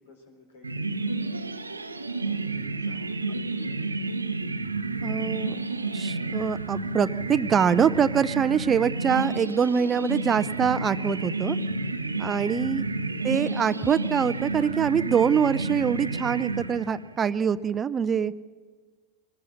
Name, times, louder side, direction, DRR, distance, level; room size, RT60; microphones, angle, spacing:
voice 1, 0.0-1.8 2.1-3.6, left 3 dB, 70° left, 4 dB, 4.1 m, -53 dB
sound 1, 0.6-17.2, right 3 dB, 85° right, 0.8 m, -30 dB
voice 2, 5.0-5.5 5.9-11.6 12.2-12.8 13.2-18.3, right 7 dB, 25° right, 17 dB, 0.5 m, -24 dB
23.5 x 18.0 x 6.4 m, 1.5 s
figure-of-eight pair, 80°, 0 cm